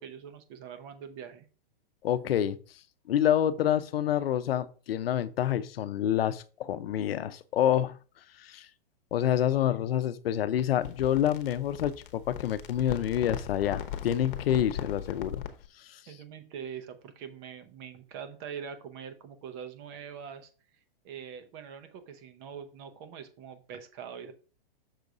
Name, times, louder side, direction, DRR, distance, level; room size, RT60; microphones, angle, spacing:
voice 1, 0.0-1.5 16.1-20.5 21.0-24.3, right 7 dB, 25° right, 0.7 m, -43 dB
voice 2, 2.0-2.6 3.1-7.9 8.4-8.7 9.1-15.4, left 11 dB, 80° left, 0.7 m, -27 dB
sound 1, 10.6-15.7, left 9 dB, 60° left, 1.0 m, -39 dB
6.5 x 4.0 x 4.8 m
hypercardioid pair, 165°, 29 cm